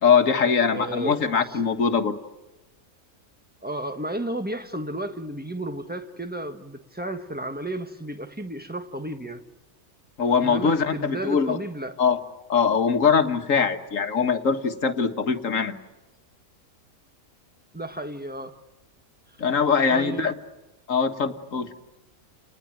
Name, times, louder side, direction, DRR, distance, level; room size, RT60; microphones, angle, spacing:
voice 1, 0.0-2.2 10.2-11.6 12.0-12.2 12.5-15.8 19.4-20.3 20.9-21.7, left 6 dB, 60° left, 1.8 m, -22 dB
voice 2, 0.7-1.6 3.6-9.4 10.4-12.0 17.7-18.5 19.9-20.3, right 1 dB, 5° right, 1.3 m, -33 dB
29.5 x 20.0 x 8.9 m
omnidirectional pair, 1.6 m